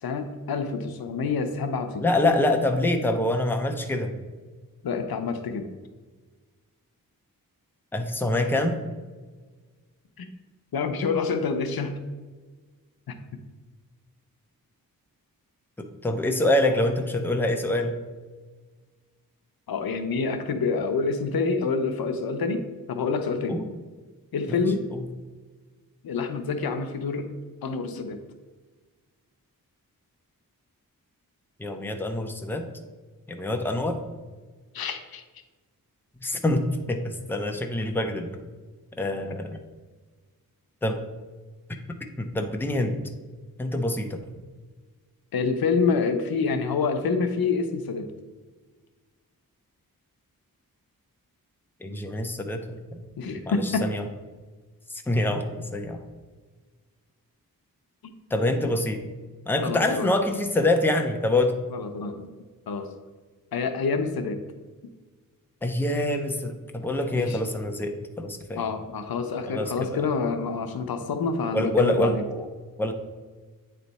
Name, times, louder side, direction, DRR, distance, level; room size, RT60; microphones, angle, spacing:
voice 1, 0.0-2.2 4.8-5.7 10.2-10.3 10.7-12.0 13.1-13.2 19.7-22.6 22.9-23.6 24.3-24.8 26.0-27.3 27.6-28.2 34.7-35.2 45.3-48.1 53.2-53.9 58.0-58.1 59.6-60.1 61.7-62.2 62.7-62.9 63.5-64.4 67.2-67.4 68.5-72.2, left 4 dB, 80° left, 7 dB, 0.7 m, -27 dB
voice 2, 2.0-4.1 7.9-8.8 15.8-18.0 23.5-23.7 24.5-25.0 31.6-32.6 33.3-34.0 36.2-38.3 39.0-39.6 40.8-41.0 42.2-43.0 43.6-44.2 51.8-53.0 53.5-54.0 54.9-56.0 58.3-59.0 59.5-61.6 65.6-68.6 69.5-70.0 71.5-72.5 72.8-72.9, left 1 dB, 5° left, 4 dB, 0.6 m, -25 dB
8.7 x 3.3 x 4.1 m, 1.3 s
wide cardioid pair, 95°, 36 cm